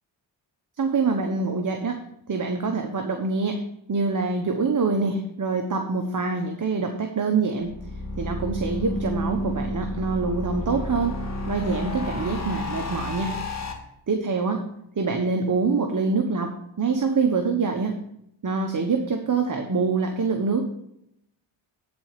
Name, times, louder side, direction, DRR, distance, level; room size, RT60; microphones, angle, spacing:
voice 1, 0.8-2.0 2.3-3.6 3.9-7.7 8.2-11.2 11.5-13.3 14.1-14.6 15.0-17.9 18.4-20.6, right 4 dB, 40° right, 4 dB, 1.2 m, -25 dB
sound 1, 7.6-13.7, left 1 dB, 35° left, 1.9 m, -31 dB
10.0 x 4.4 x 6.7 m, 0.76 s
cardioid pair, 65°, 48 cm